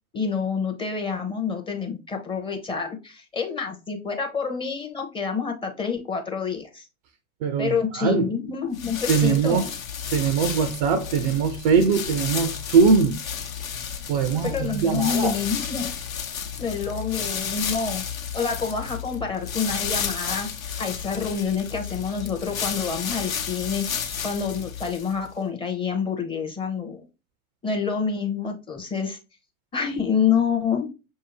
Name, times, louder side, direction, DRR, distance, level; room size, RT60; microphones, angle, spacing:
voice 1, 0.1-6.8 7.6-9.7 14.4-15.9 16.6-18.0 18.3-20.5 20.8-23.9 24.2-27.0 27.6-29.2 29.7-30.9, left 6 dB, 10° left, 0.6 m, -27 dB
voice 2, 7.4-8.3 9.1-9.7 10.1-13.2 14.1-15.4, right 5 dB, 30° right, 0.4 m, -21 dB
sound 1, 8.7-25.3, left 7 dB, 65° left, 0.9 m, -32 dB
6.1 x 2.7 x 2.9 m
figure-of-eight pair, 90°, 44 cm